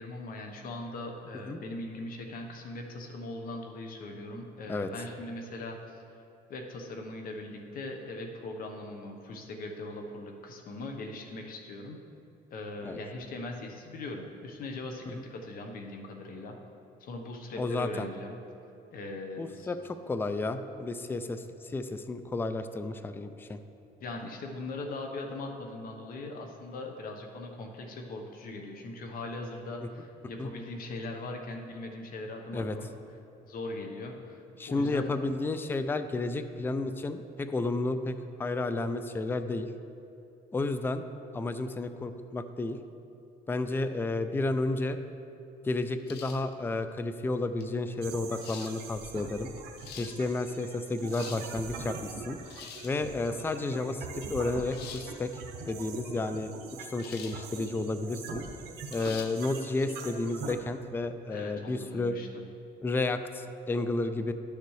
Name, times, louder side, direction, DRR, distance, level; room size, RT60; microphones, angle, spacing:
voice 1, 0.0-6.0 6.5-12.0 12.5-16.5 17.0-18.3 18.9-19.7 24.0-32.9 33.4-35.1 61.3-62.4, left 2 dB, 60° left, 3 dB, 1.1 m, -40 dB
voice 2, 17.6-18.1 19.4-23.6 30.4-30.5 32.5-32.8 34.6-39.7 40.5-41.0 41.3-42.8 43.5-45.0 45.6-49.5 50.0-52.4 52.8-55.3 55.7-56.5 56.8-58.4 58.9-62.1 62.8-64.3, left 2 dB, 15° left, 10 dB, 0.4 m, -32 dB
sound 1, 46.1-46.5 47.6-47.7 48.4-48.7 49.6-50.2 50.9-51.5 52.4-53.0 54.7-55.1 57.0-57.4 57.8-57.9 58.9-59.3, left 8 dB, 75° left, 0.7 m, -45 dB
sound 2, 48.0-60.5, right 4 dB, 75° right, 1.0 m, -43 dB
11.5 x 6.7 x 3.2 m, 2.8 s
cardioid pair, 110°, 17 cm